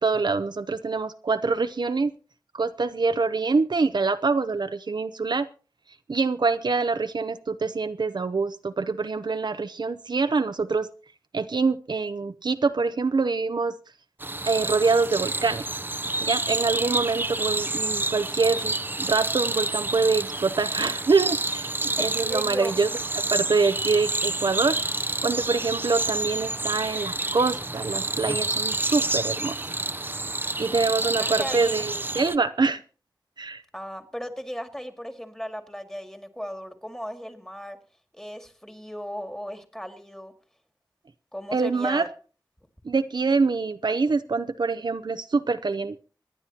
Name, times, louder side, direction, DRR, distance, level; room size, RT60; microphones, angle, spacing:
voice 1, 0.0-2.1 2.5-5.5 6.1-10.9 11.3-13.8 14.5-15.6 16.2-22.9 23.3-24.8 25.2-29.6 30.6-32.8 33.4-33.6 41.5-42.1 42.8-46.0, right 4 dB, 70° right, 11 dB, 0.7 m, -25 dB
sound 1, 14.2-32.4, right 2 dB, 25° right, 0.7 m, -29 dB
voice 2, 22.3-22.8 31.2-31.9 33.7-37.8 38.1-40.3 41.3-42.1, equal, 5° left, 6 dB, 2.1 m, -36 dB
26.0 x 9.9 x 2.9 m, 0.37 s
wide cardioid pair, 70°, 8 cm